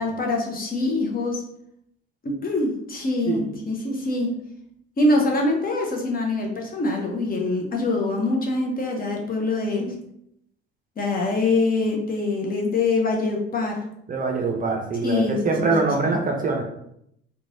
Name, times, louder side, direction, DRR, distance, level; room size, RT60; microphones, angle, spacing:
voice 1, 0.0-1.4 2.2-4.4 5.0-9.9 11.0-13.8 15.0-15.7 16.0-16.2, left 2 dB, 30° left, 1 dB, 0.7 m, -24 dB
voice 2, 14.1-16.6, right 3 dB, 25° right, 1 dB, 0.6 m, -24 dB
3.0 x 2.3 x 2.6 m, 0.75 s
hypercardioid pair, 65°, 30 cm